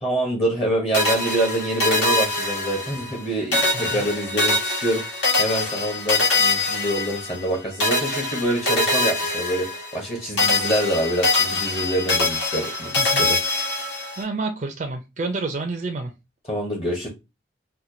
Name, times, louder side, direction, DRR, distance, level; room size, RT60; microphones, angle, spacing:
voice 1, 0.0-5.0 5.4-9.7 9.9-13.4 16.5-17.1, right 1 dB, 30° left, 0.9 m, -26 dB
sound 1, 0.9-3.2 3.5-7.5 7.8-10.1 10.4-14.2, left 2 dB, 90° left, 1.5 m, -23 dB
voice 2, 3.7-4.0 13.0-13.3 14.2-16.1, right 3 dB, 40° right, 0.4 m, -29 dB
4.3 x 2.2 x 2.6 m
head